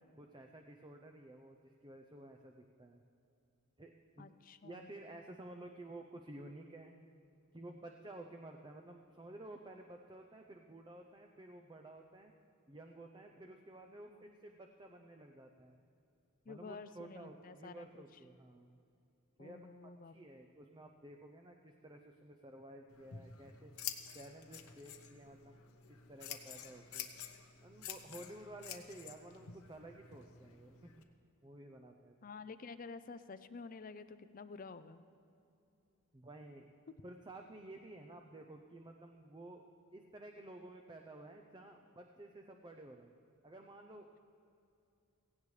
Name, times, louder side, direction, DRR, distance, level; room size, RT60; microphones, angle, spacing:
voice 1, 0.2-3.0 3.8-4.3 4.6-6.9 7.5-12.3 12.7-15.8 16.5-18.8 19.4-23.7 24.1-25.6 25.9-27.1 27.6-31.1 31.4-32.1 36.1-36.7 37.0-43.1 43.4-44.2, right 1 dB, 20° right, 3 dB, 0.6 m, -53 dB
voice 2, 4.2-4.9 16.5-18.0 19.4-20.3 32.2-35.0, left 4 dB, 40° left, 12 dB, 0.4 m, -50 dB
Scissors, 22.9-31.0, left 9 dB, 85° left, 0.9 m, -49 dB
16.5 x 16.5 x 3.3 m, 2.6 s
head